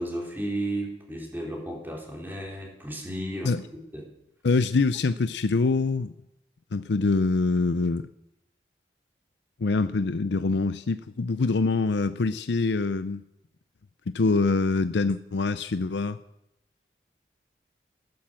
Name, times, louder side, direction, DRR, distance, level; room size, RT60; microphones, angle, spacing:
voice 1, 0.0-3.5 3.9-4.1, right 1 dB, 10° right, 0 dB, 3.9 m, -33 dB
voice 2, 4.4-6.1 6.7-8.1 9.6-13.2 14.1-16.2, left 3 dB, 90° left, 13 dB, 0.6 m, -24 dB
14.5 x 12.5 x 7.6 m, 0.85 s
head